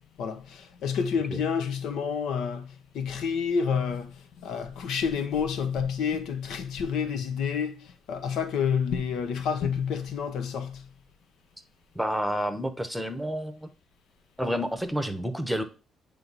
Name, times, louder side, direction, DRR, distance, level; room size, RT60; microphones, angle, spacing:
voice 1, 0.2-2.7 2.9-4.1 4.4-7.8 8.1-10.8, left 6 dB, 80° left, 0.8 m, -29 dB
voice 2, 11.9-13.7 14.4-15.6, equal, ahead, 1.0 m, -29 dB
9.0 x 3.3 x 4.0 m
cardioid pair, 90°, 0 cm